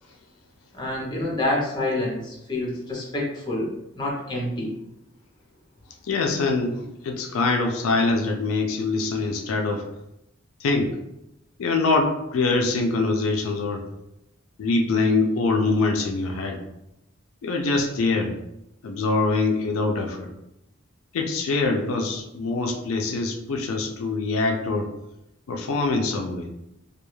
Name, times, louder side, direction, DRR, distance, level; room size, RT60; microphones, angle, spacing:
voice 1, 0.7-4.7, left 1 dB, 20° left, -3 dB, 0.6 m, -27 dB
voice 2, 6.1-9.8 10.6-10.9 11.6-13.8 14.6-16.6 17.4-18.4 18.8-20.3 21.1-24.9 25.5-26.5, left 3 dB, 90° left, 2 dB, 0.4 m, -24 dB
2.3 x 2.2 x 3.0 m, 0.85 s
head